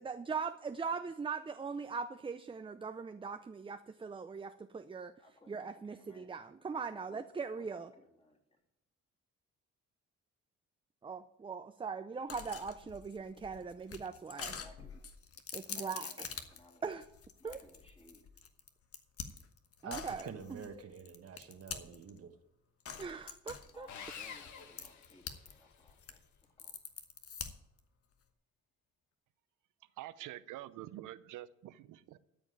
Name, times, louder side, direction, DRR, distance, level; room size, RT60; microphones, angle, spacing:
voice 1, 0.0-5.1 5.5-7.9 11.0-14.6 15.5-16.3 16.8-17.0 17.4-17.6 19.8-20.7 23.0-23.9, right 5 dB, 15° right, 10 dB, 0.5 m, -41 dB
voice 2, 5.2-6.3 6.9-7.2 7.6-8.6 14.3-15.1 15.7-16.8 17.4-18.2 23.7-26.8, left 1 dB, 20° left, 0 dB, 3.1 m, -61 dB
sound 1, 12.3-22.2 22.9-25.5 25.8-27.8, left 6 dB, 50° left, 1.3 m, -46 dB
voice 3, 19.8-22.3, right 6 dB, 50° right, 6 dB, 1.3 m, -47 dB
Sawing, 23.9-25.8, left 7 dB, 70° left, 1.3 m, -48 dB
voice 4, 30.0-32.2, right 14 dB, 90° right, 16 dB, 0.7 m, -47 dB
13.0 x 5.2 x 8.8 m, 0.85 s
cardioid pair, 90°, 30 cm